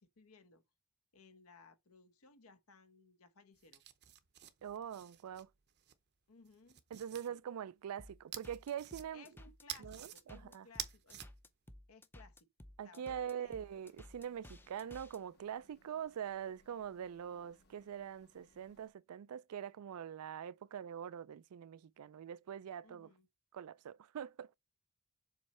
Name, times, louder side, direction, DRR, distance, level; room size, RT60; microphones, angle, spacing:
voice 1, 0.0-0.6 1.1-3.8 6.3-6.8 7.3-7.4 9.1-11.3 11.9-12.5 12.8-13.6 22.8-23.3, left 4 dB, 75° left, 1.1 m, -61 dB
sound 1, 3.6-5.9 6.5-7.3 8.3-9.3 9.7-10.2 10.6-11.3, right 11 dB, 50° right, 0.7 m, -48 dB
voice 2, 4.6-5.5 6.9-9.3 9.8-10.7 12.8-23.1 23.5-24.5, right 8 dB, 85° right, 0.4 m, -44 dB
sound 2, 8.0-15.2, left 1 dB, 10° left, 0.5 m, -56 dB
sound 3, 13.4-18.9, left 1 dB, 50° left, 0.9 m, -71 dB
7.2 x 3.2 x 4.3 m
head